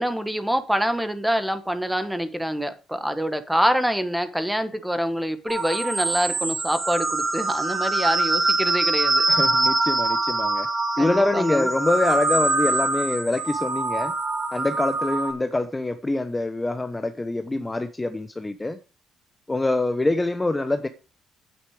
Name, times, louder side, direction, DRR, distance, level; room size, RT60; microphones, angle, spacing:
voice 1, 0.0-9.4 11.0-11.7, equal, 5° right, 1.6 m, -26 dB
sound 1, 5.5-15.3, right 2 dB, 30° right, 2.6 m, -24 dB
voice 2, 9.3-10.7 11.0-14.1 14.5-18.8 19.5-20.9, left 2 dB, 15° left, 0.9 m, -25 dB
9.3 x 8.2 x 5.0 m
cardioid pair, 90°, 0 cm